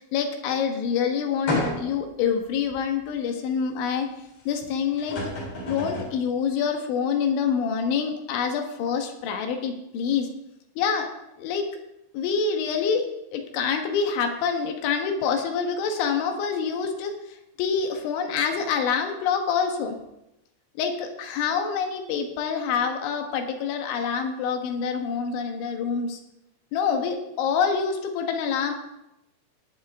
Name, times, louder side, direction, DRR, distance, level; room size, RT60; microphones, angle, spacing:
voice 1, 0.0-4.1 4.5-5.3 5.7-10.3 10.8-11.1 11.4-11.7 12.1-17.1 17.6-20.0 20.8-26.2 26.7-28.7, left 6 dB, 75° left, 4 dB, 3.6 m, -26 dB
sound 1, 1.5-2.1 2.7-2.8 4.6-4.7 5.0-6.2, left 1 dB, 50° left, 5.5 m, -30 dB
21.5 x 7.4 x 3.6 m, 0.89 s
omnidirectional pair, 5.6 m